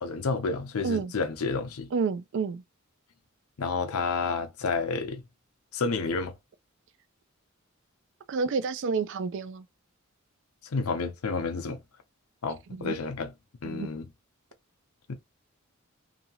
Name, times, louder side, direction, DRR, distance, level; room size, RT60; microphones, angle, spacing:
voice 1, 0.0-1.9 3.6-5.2 5.7-6.3 10.6-11.8 12.4-13.3 13.6-14.1 15.1-15.2, left 4 dB, 90° left, 0.6 m, -30 dB
voice 2, 1.9-2.6 8.3-9.7 12.8-13.0 13.6-13.9, right 5 dB, 60° right, 0.4 m, -29 dB
2.7 x 2.7 x 2.7 m
head